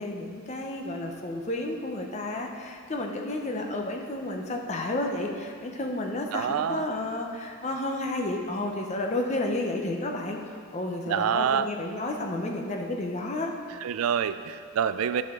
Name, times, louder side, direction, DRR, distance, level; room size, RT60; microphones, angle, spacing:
voice 1, 0.0-13.5, left 2 dB, 30° left, 2 dB, 0.7 m, -31 dB
voice 2, 6.3-6.9 11.1-11.7 13.8-15.2, right 8 dB, 90° right, 12 dB, 0.3 m, -26 dB
11.0 x 5.7 x 3.7 m, 2.2 s
head